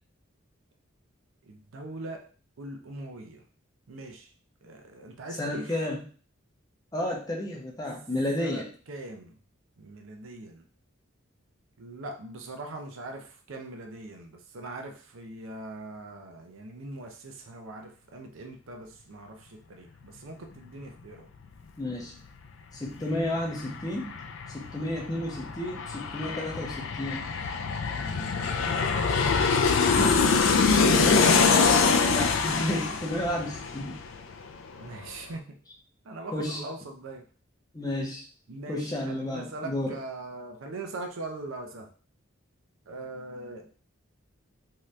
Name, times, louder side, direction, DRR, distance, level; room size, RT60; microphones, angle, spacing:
voice 1, 1.4-2.3 2.6-3.4 3.9-4.3 4.6-5.8 8.4-9.3 9.8-10.6 11.8-21.3 28.0-29.5 30.2-31.5 34.8-35.4 36.0-37.2 38.5-41.9 42.9-43.7, right 2 dB, 75° right, 4 dB, 0.5 m, -41 dB
voice 2, 5.4-6.1 6.9-8.7 21.8-22.1 22.7-24.2 24.5-27.3 29.8-30.4 30.7-31.3 32.0-34.0 36.3-36.6 37.7-38.2 38.7-40.0, left 1 dB, 20° left, -2 dB, 0.6 m, -31 dB
Aircraft, 22.9-23.0 23.2-34.5 34.8-34.9, left 5 dB, 70° left, 0.3 m, -24 dB
2.8 x 2.4 x 3.2 m, 0.41 s
head